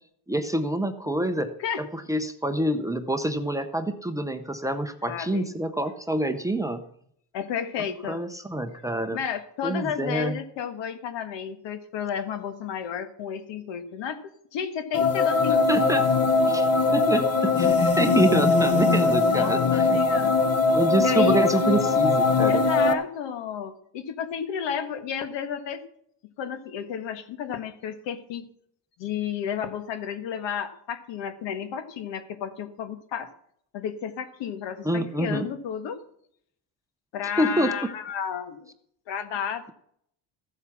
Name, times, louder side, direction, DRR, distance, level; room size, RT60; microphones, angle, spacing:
voice 1, 0.3-1.5 1.8-6.8 8.0-9.2 9.6-10.4 15.7-16.1 16.5-20.0 20.7-22.6 34.8-35.5 37.4-37.7, right 1 dB, 10° right, 7 dB, 0.6 m, -27 dB
voice 2, 5.1-5.5 7.3-8.2 9.1-14.2 14.5-16.3 18.9-20.3 21.0-21.4 22.5-25.8 26.4-28.4 29.0-33.3 33.7-36.0 37.1-38.7 39.1-39.7, left 8 dB, 75° left, 9 dB, 1.7 m, -32 dB
sound 1, 14.9-22.9, left 4 dB, 35° left, 1.0 m, -21 dB
14.5 x 8.0 x 5.9 m, 0.67 s
cardioid pair, 160°, 43 cm